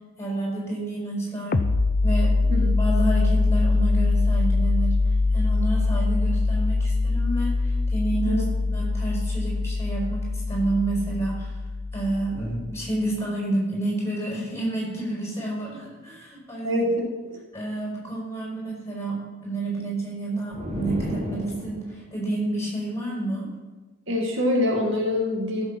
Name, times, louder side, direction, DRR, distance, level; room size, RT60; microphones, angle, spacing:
voice 1, 0.2-1.6 2.0-4.9 5.3-8.4 8.7-11.5 11.9-16.8 17.5-19.2 19.4-23.5, right 2 dB, 15° left, -4 dB, 5.1 m, -29 dB
sound 1, 1.5-12.9, left 3 dB, 45° left, 0.5 m, -23 dB
voice 2, 16.6-17.4 24.1-25.7, left 1 dB, 65° right, 0 dB, 1.9 m, -25 dB
sound 2, 20.5-22.1, equal, 30° right, 1.8 m, -32 dB
15.0 x 7.2 x 5.9 m, 1.2 s
head